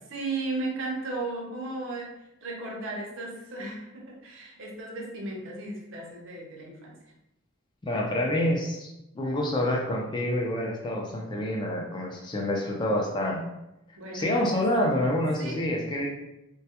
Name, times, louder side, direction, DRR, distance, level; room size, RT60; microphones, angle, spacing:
voice 1, 0.1-7.0 14.0-14.7 15.4-15.6, right 2 dB, 70° right, -1 dB, 0.6 m, -35 dB
voice 2, 7.8-13.4 14.1-16.1, left 1 dB, 25° left, -1 dB, 0.4 m, -27 dB
2.2 x 2.1 x 2.8 m, 0.89 s
head